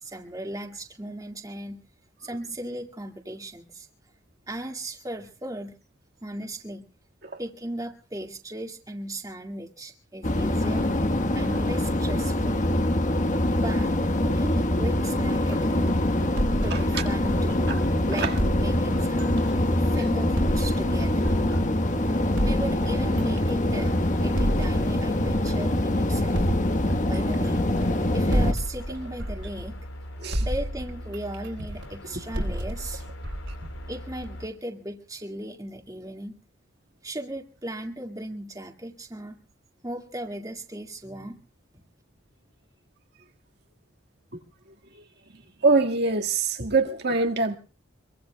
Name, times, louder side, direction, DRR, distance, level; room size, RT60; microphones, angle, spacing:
voice 1, 0.0-1.8 2.2-3.9 4.5-5.7 6.2-6.9 7.4-10.9 11.3-12.7 13.5-16.0 16.6-17.7 18.0-19.4 19.8-21.3 22.4-23.9 24.2-26.4 27.0-27.7 28.1-29.8 30.4-33.0 33.9-36.3 37.0-39.4 39.8-41.4, right 1 dB, 20° right, 2.0 m, -37 dB
sound 1, 10.2-28.5, left 1 dB, 40° left, 1.3 m, -24 dB
sound 2, 15.5-17.9 18.4-21.9 22.4-25.9 26.3-30.0 30.3-34.4, equal, 80° right, 4.5 m, -32 dB
voice 2, 16.7-17.0 17.7-17.8 18.1-18.4 30.2-30.5 32.4-32.5 44.9-45.0 45.3-47.6, right 3 dB, 55° right, 1.8 m, -25 dB
sound 3, 23.7-34.5, equal, 85° left, 3.7 m, -41 dB
24.5 x 23.5 x 2.3 m
head